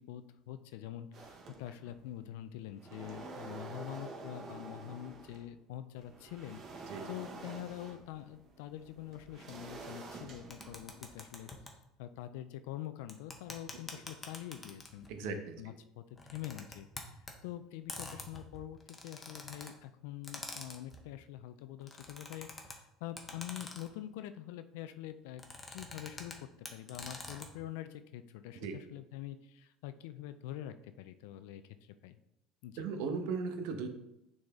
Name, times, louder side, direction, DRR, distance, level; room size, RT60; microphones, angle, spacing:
voice 1, 0.0-11.5 12.0-16.0 16.3-25.4 25.7-32.2 32.6-32.8, left 12 dB, 85° left, 11 dB, 0.3 m, -45 dB
sound 1, 1.1-2.1 2.5-5.5 6.0-11.5, right 3 dB, 40° right, 1.1 m, -48 dB
sound 2, 10.5-11.7 13.1-15.1 16.1-17.3 17.9-19.7 20.2-21.0 21.8-22.8 23.2-24.0 25.4-26.3 26.7-27.5, left 2 dB, 15° left, 1.0 m, -46 dB
voice 2, 15.1-15.6 28.6-28.7 32.8-33.9, right 5 dB, 75° right, 7 dB, 0.9 m, -37 dB
6.5 x 4.0 x 3.6 m, 0.84 s
supercardioid pair, 120°, 0 cm